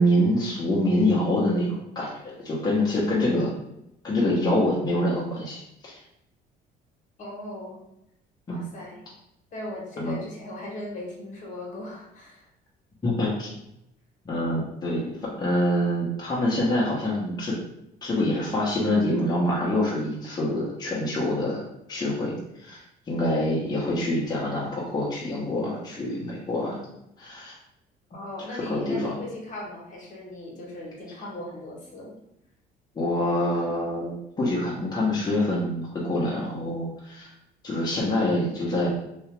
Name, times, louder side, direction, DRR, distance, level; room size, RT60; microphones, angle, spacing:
voice 1, 0.0-3.5 4.0-6.0 8.5-8.6 10.0-10.1 13.0-13.5 14.2-17.6 18.0-21.6 21.9-26.8 27.2-27.5 28.5-29.1 32.9-37.3 37.6-38.9, left 1 dB, 25° left, -6 dB, 0.9 m, -26 dB
voice 2, 7.2-7.8 8.5-9.0 9.5-12.5 28.1-32.2, left 1 dB, 50° left, -3 dB, 1.2 m, -38 dB
2.9 x 2.7 x 3.2 m, 0.83 s
cardioid pair, 110°, 17 cm